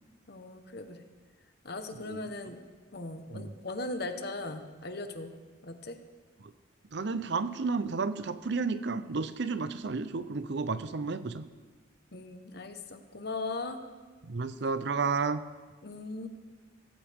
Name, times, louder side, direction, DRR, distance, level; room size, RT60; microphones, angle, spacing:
voice 1, 0.3-1.0 1.6-2.6 2.9-5.3 5.6-6.0 12.1-13.8 15.8-16.3, left 2 dB, 55° left, 7 dB, 1.2 m, -38 dB
voice 2, 6.9-11.5 14.2-15.4, right 4 dB, 60° right, 13 dB, 0.6 m, -32 dB
17.0 x 16.0 x 3.6 m, 1.4 s
head